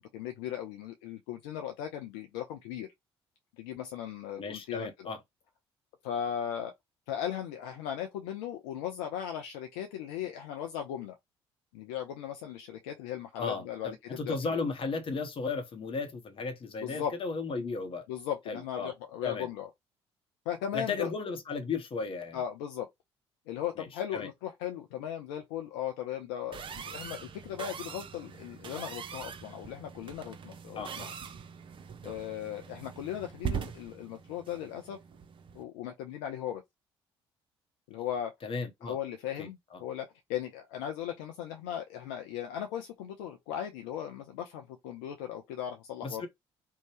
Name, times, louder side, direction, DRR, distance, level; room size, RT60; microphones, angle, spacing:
voice 1, 0.0-2.9 3.6-5.1 6.0-6.7 7.1-11.1 11.7-14.6 16.8-17.1 18.1-19.7 20.5-21.1 22.3-22.9 23.5-31.1 32.0-35.0 35.5-36.6 37.9-38.3 38.8-46.3, left 10 dB, 70° left, 0.4 m, -37 dB
voice 2, 4.4-5.2 13.4-18.1 18.5-18.9 19.2-19.5 20.7-22.4 23.8-24.3 30.8-30.9 38.4-39.0 39.4-39.5 46.0-46.3, left 4 dB, 40° left, 0.9 m, -35 dB
sound 1, 26.5-35.6, right 7 dB, 40° right, 0.5 m, -42 dB
2.7 x 2.1 x 3.1 m
figure-of-eight pair, 50°, 14 cm